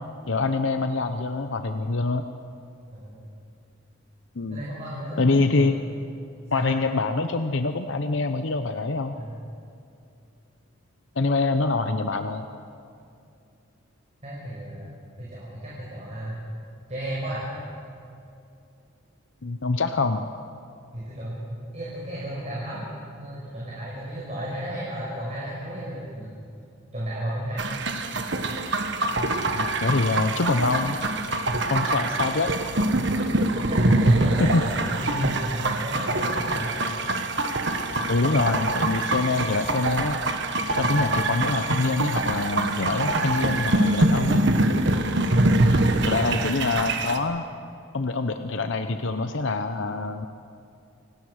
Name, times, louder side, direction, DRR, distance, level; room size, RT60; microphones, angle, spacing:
voice 1, 0.3-2.2 4.4-4.6 5.2-5.8 6.5-9.1 11.2-12.5 19.4-20.2 29.5-31.0 31.7-32.5 34.4-34.6 35.2-35.3 38.1-40.2 40.8-44.5 46.1-47.5 47.9-50.3, left 3 dB, 60° left, 7 dB, 0.8 m, -25 dB
voice 2, 2.9-3.3 4.5-5.9 6.5-6.7 9.1-9.4 14.2-16.4 16.9-17.4 20.9-22.9 23.2-26.3 26.9-27.8 33.5-36.7 45.5-46.5, right 1 dB, 35° right, -7 dB, 5.8 m, -34 dB
sound 1, 27.6-47.2, right 2 dB, 55° right, 1.5 m, -24 dB
28.5 x 18.5 x 6.5 m, 2.6 s
head